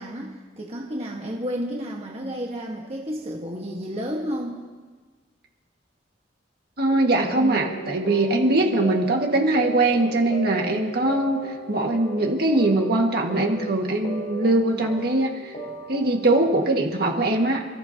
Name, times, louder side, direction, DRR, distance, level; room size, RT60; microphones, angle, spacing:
voice 1, 0.0-4.6 7.3-7.8 8.6-9.2, equal, 35° right, -1 dB, 1.6 m, -32 dB
voice 2, 6.8-15.5 15.9-17.7, right 2 dB, 55° right, 1 dB, 1.9 m, -22 dB
sound 1, 6.9-16.7, right 2 dB, 35° left, 1.6 m, -36 dB
29.0 x 15.0 x 2.9 m, 1.4 s
head